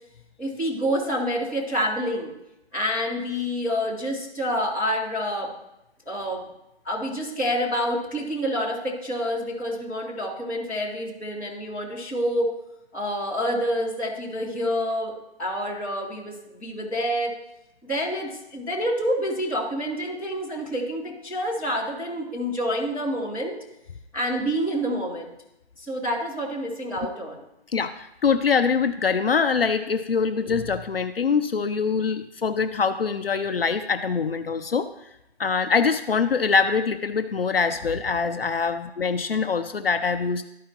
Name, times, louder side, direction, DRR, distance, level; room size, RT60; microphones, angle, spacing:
voice 1, 0.4-2.3 2.7-5.5 6.0-6.4 6.8-12.5 12.9-15.1 15.4-17.3 17.8-23.6 24.1-25.3 25.8-27.4, equal, 5° left, -11 dB, 1.3 m, -27 dB
voice 2, 27.7-34.9 35.4-40.4, left 5 dB, 60° left, 8 dB, 0.7 m, -24 dB
13.5 x 4.9 x 3.0 m, 0.85 s
hypercardioid pair, 170°, 33 cm